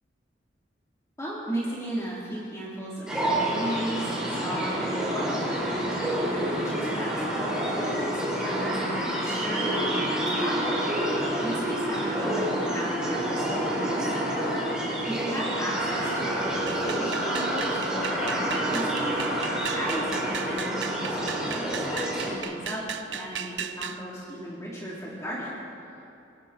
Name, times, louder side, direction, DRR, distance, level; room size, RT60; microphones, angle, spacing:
voice 1, 1.2-11.1 11.4-14.0 15.0-25.6, right 1 dB, 15° left, -7 dB, 3.8 m, -36 dB
sound 1, 3.1-22.4, right 1 dB, 5° right, 5.7 m, -28 dB
sound 2, 16.7-24.0, right 8 dB, 75° right, 0.8 m, -36 dB
24.5 x 23.5 x 4.6 m, 2.6 s
head